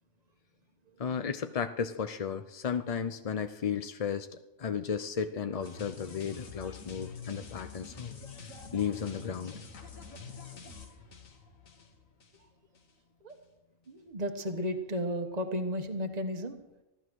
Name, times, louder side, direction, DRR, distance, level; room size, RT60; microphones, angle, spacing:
voice 1, 1.0-4.3 4.6-8.1 8.7-9.6, left 7 dB, 45° left, 9 dB, 0.5 m, -34 dB
sound 1, 5.6-12.4 12.7-12.9, left 4 dB, 85° left, 1.9 m, -47 dB
voice 2, 13.9-16.6, equal, 30° right, 5 dB, 1.4 m, -33 dB
15.0 x 11.5 x 6.3 m, 0.96 s
omnidirectional pair, 1.4 m